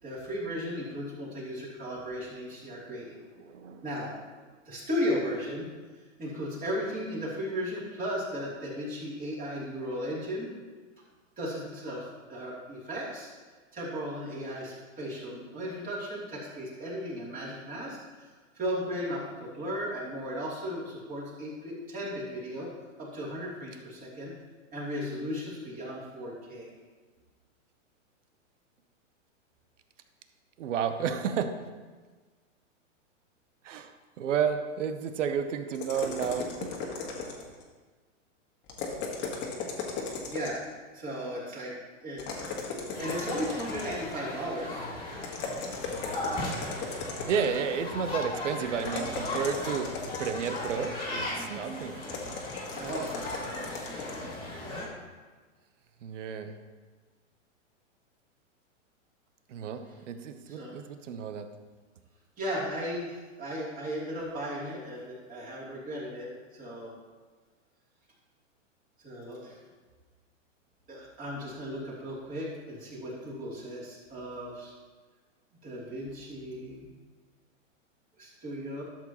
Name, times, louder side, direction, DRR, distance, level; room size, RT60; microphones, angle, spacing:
voice 1, 0.0-3.1 3.8-4.1 4.6-5.7 6.2-10.5 11.4-13.3 13.7-18.3 18.5-22.7 23.0-24.3 24.7-26.7 40.3-40.6 40.9-41.7 42.0-42.4 43.0-44.8 52.7-53.1 60.5-60.7 62.4-66.9 69.0-69.6 70.9-74.7 75.6-76.9 78.2-78.8, equal, 20° right, -6 dB, 3.0 m, -36 dB
voice 2, 3.4-3.8 30.6-31.7 33.6-36.8 47.3-49.9 50.2-52.0 56.0-56.5 59.5-61.5, right 7 dB, 70° right, 9 dB, 0.9 m, -32 dB
sound 1, 35.7-37.6 38.7-40.7 42.2-44.2 45.2-47.6 48.8-51.0 52.0-54.2, left 4 dB, 30° left, 1.6 m, -37 dB
sound 2, 42.9-54.9, left 1 dB, 15° left, 2.2 m, -37 dB
12.5 x 7.5 x 3.0 m, 1.4 s
hypercardioid pair, 130°, 38 cm